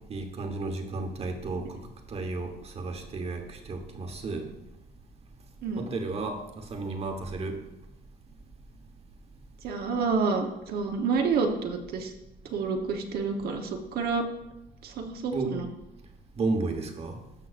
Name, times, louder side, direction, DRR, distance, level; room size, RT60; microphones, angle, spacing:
voice 1, 0.1-1.8 2.1-4.5 5.8-7.6 15.3-15.6 16.4-17.2, right 3 dB, 35° right, 5 dB, 1.2 m, -33 dB
voice 2, 9.6-12.1 12.5-14.3 14.8-15.7, right 4 dB, 65° right, 3 dB, 1.0 m, -29 dB
13.0 x 5.7 x 2.5 m, 0.93 s
cardioid pair, 110°, 17 cm